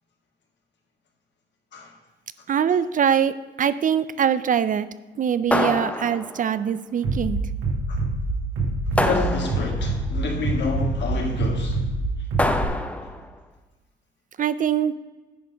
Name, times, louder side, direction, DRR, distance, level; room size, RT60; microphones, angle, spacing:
voice 1, 2.5-4.9 5.2-7.4 14.4-14.9, right 8 dB, 40° right, 0.4 m, -23 dB
sound 1, 5.5-6.6 9.0-9.9 12.4-13.3, left 1 dB, 5° left, 0.7 m, -25 dB
Bass drum, 7.0-12.6, right 2 dB, 80° right, 2.4 m, -26 dB
voice 2, 9.0-11.8, left 3 dB, 65° left, 2.0 m, -28 dB
10.0 x 4.2 x 5.6 m
cardioid pair, 90°, 20 cm